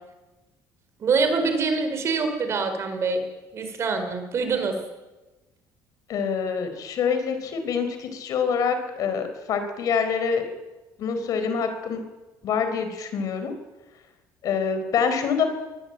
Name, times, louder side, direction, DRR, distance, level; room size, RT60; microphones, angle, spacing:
voice 1, 1.0-3.2 3.5-4.7, right 4 dB, 35° right, 7 dB, 4.4 m, -25 dB
voice 2, 6.1-10.4 11.0-12.0 12.4-13.5 14.4-15.5, left 6 dB, 50° left, 8 dB, 4.1 m, -25 dB
23.5 x 20.0 x 9.0 m, 1.1 s
cardioid pair, 165°, 8 cm